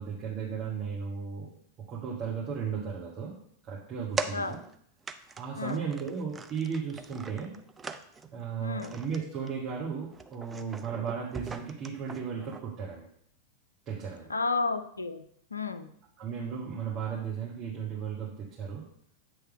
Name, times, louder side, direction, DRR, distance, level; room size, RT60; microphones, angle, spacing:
voice 1, 0.0-1.5 1.9-3.3 3.6-4.6 5.4-7.6 8.3-13.1 13.9-14.3 16.2-18.8, right 6 dB, 35° right, -5 dB, 1.3 m, -35 dB
sound 1, 4.2-4.8 5.0-5.4 5.7-8.3 8.8-9.2 9.5-9.7 10.1-12.6, right 4 dB, 15° right, 0.4 m, -40 dB
voice 2, 8.6-9.0 14.3-15.2 15.5-15.9, left 4 dB, 80° left, 11 dB, 0.4 m, -32 dB
8.3 x 3.2 x 4.9 m, 0.68 s
figure-of-eight pair, 90°, 0 cm